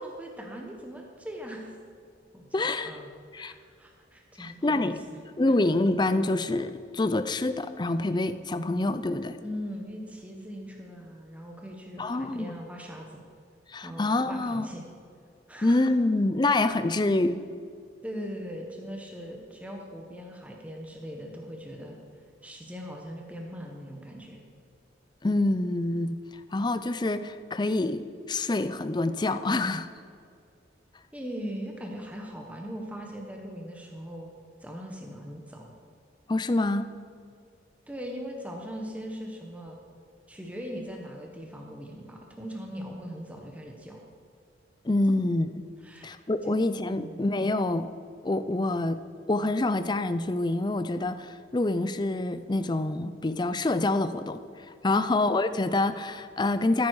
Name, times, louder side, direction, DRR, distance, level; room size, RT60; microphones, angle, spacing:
voice 1, 0.0-1.8 2.3-2.5 2.8-3.1 3.4-5.0 5.5-5.6 9.4-13.2 13.8-14.8 15.5-15.9 18.0-22.0 22.4-24.4 31.1-34.3 34.6-35.7 37.9-39.8 40.3-44.0 45.8-46.1 46.4-46.5 46.9-47.2 54.9-55.0, equal, 5° right, 1 dB, 1.1 m, -40 dB
voice 2, 2.5-3.0 3.3-3.5 4.4-5.0 5.4-9.4 12.0-12.5 13.7-14.6 15.6-17.4 25.2-26.2 26.5-29.9 36.3-36.9 44.8-45.7 46.0-47.9 48.2-49.0 49.3-54.4 54.8-56.9, left 2 dB, 25° left, 11 dB, 0.4 m, -26 dB
14.0 x 9.6 x 4.8 m, 2.3 s
head